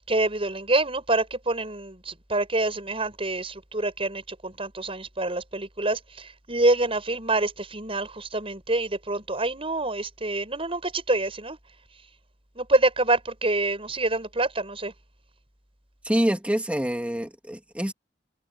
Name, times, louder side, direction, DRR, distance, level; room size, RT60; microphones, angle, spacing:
voice 1, 0.1-11.6 12.5-14.9, right 2 dB, 30° right, 7.9 m, -26 dB
voice 2, 16.0-17.9, equal, 10° right, 2.8 m, -26 dB
head